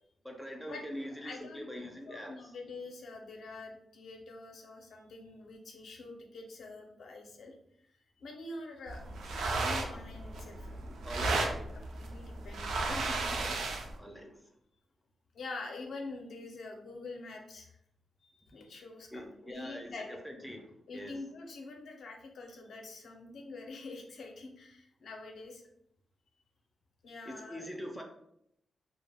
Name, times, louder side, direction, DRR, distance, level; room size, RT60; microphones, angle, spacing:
voice 1, 0.2-2.3 11.0-11.6 14.0-14.4 19.1-21.1 27.3-28.0, equal, ahead, 2 dB, 0.3 m, -43 dB
voice 2, 1.2-7.5 8.2-9.0 9.3-11.5 11.9-13.7 15.3-17.8 18.2-20.2 20.9-25.6 27.0-27.6, left 3 dB, 65° left, 2 dB, 0.5 m, -46 dB
sound 1, 8.9-14.0, right 3 dB, 90° right, 0.4 m, -34 dB
2.2 x 2.0 x 3.3 m, 0.76 s
wide cardioid pair, 130°, 0 cm